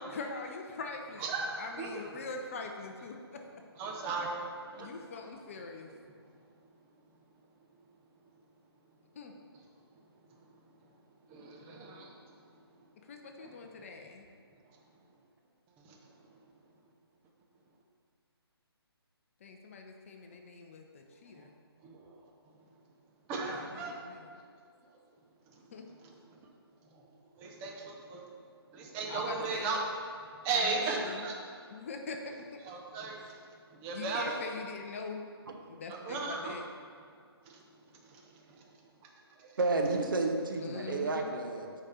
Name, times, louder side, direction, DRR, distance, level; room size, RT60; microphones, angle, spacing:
voice 1, 0.1-3.4 4.8-5.9 9.2-9.3 13.1-14.3 19.4-21.5 23.4-24.3 25.7-25.9 29.1-29.8 30.5-31.2 31.7-32.6 33.9-35.2 35.6-36.6 40.6-41.4, left 4 dB, 30° left, 3 dB, 0.6 m, -43 dB
voice 2, 1.2-2.1 3.8-4.9 11.3-12.3 15.8-16.1 21.3-21.4 21.8-22.2 23.3-24.0 25.5-25.6 26.9-27.1 27.4-28.3 28.7-29.8 30.4-31.3 32.6-33.4 33.7-34.4 35.9-36.6 37.4-37.6 38.0-38.6, right 4 dB, 15° right, 0 dB, 0.6 m, -36 dB
voice 3, 39.6-41.7, right 3 dB, 50° right, 3 dB, 0.9 m, -31 dB
6.5 x 4.9 x 5.6 m, 2.2 s
figure-of-eight pair, 145°, 14 cm